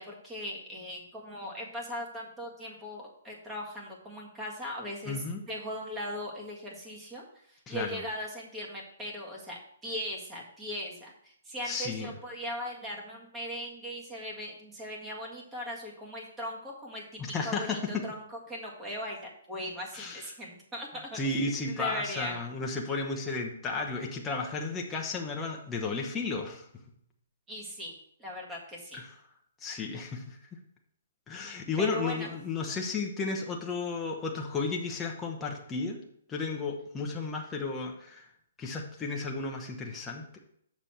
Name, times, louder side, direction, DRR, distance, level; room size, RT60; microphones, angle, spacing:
voice 1, 0.0-7.2 7.5-17.0 17.4-22.4 27.5-27.9 28.2-29.0 31.8-32.3, equal, 15° right, -1 dB, 1.8 m, -39 dB
voice 2, 5.1-5.4 7.7-8.0 11.6-12.1 17.2-18.0 19.9-20.3 21.1-26.6 28.9-29.1 29.6-30.4 31.3-36.0 36.3-38.2 38.6-40.4, left 4 dB, 10° left, 0 dB, 0.9 m, -33 dB
6.9 x 6.2 x 4.4 m, 0.68 s
hypercardioid pair, 150°, 0 cm